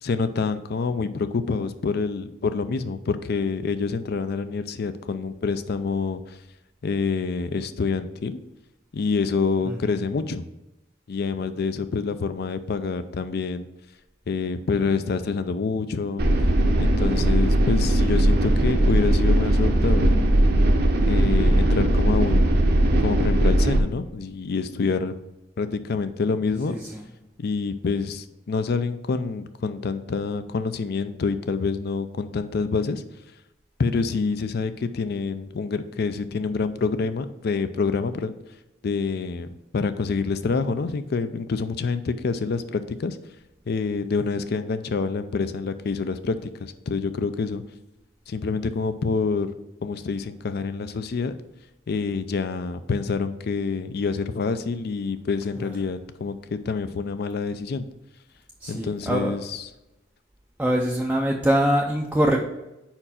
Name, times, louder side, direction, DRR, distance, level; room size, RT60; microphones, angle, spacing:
voice 1, 0.0-6.4 6.8-8.4 8.9-10.4 11.1-13.7 14.3-16.2 16.8-20.2 21.0-25.1 25.6-26.8 27.4-33.0 33.8-38.3 38.8-43.2 43.7-47.6 48.3-49.5 49.8-51.3 51.9-57.9 58.7-59.7, left 4 dB, 55° left, 11 dB, 0.4 m, -27 dB
sound 1, 16.2-23.8, right 1 dB, 55° right, 0.7 m, -19 dB
voice 2, 26.7-27.0 58.6-59.3 60.6-62.4, right 1 dB, 5° right, -1 dB, 0.4 m, -23 dB
4.9 x 4.5 x 5.6 m, 0.95 s
head